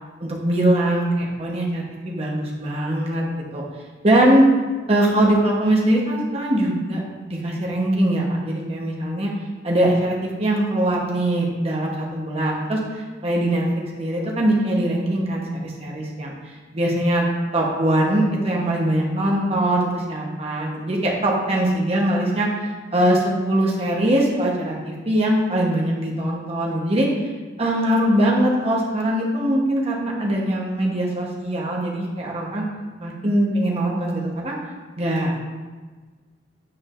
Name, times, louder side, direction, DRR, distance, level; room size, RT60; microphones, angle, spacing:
voice 1, 0.2-3.2 3.5-3.6 4.0-4.4 4.9-9.3 9.6-13.7 13.9-16.3 16.7-17.3 17.5-27.1 27.6-32.6 33.0-34.6 35.0-35.4, right 1 dB, 35° right, -3 dB, 1.1 m, -22 dB
8.7 x 4.6 x 2.6 m, 1.4 s
head